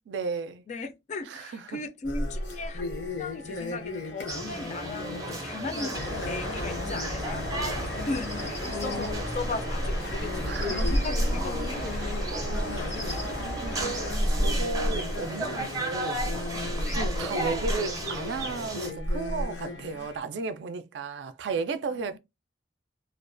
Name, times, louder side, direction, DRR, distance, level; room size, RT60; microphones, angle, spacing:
voice 1, 0.0-0.6 1.3-1.6 8.9-9.1 10.5-11.0 12.3-12.9 13.6-16.2 16.9-22.2, right 4 dB, 75° right, 0.3 m, -34 dB
voice 2, 0.7-6.0 6.3-13.1 14.9-15.1 16.8-17.1 19.9-20.1 21.9-22.2, left 3 dB, 40° left, 0.3 m, -38 dB
sound 1, 2.0-20.2, left 1 dB, 75° left, 0.7 m, -33 dB
sound 2, 4.3-18.9, right 1 dB, 20° right, 0.5 m, -35 dB
sound 3, 5.9-14.1, left 1 dB, 90° left, 1.1 m, -36 dB
2.3 x 2.2 x 2.4 m
head